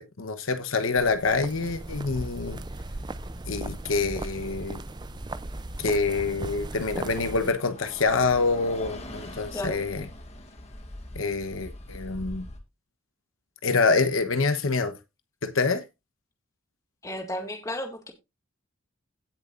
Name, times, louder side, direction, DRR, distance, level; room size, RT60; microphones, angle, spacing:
voice 1, 0.0-2.6 3.5-4.8 5.8-10.0 11.2-12.5 13.6-15.0 15.4-15.8, left 4 dB, 75° left, 1.0 m, -26 dB
sound 1, 1.0-7.5, right 2 dB, 20° right, 0.4 m, -37 dB
Bus, 1.9-12.6, left 1 dB, 30° left, 1.7 m, -43 dB
voice 2, 17.0-18.1, left 1 dB, 15° left, 2.0 m, -33 dB
17.0 x 6.8 x 2.5 m
head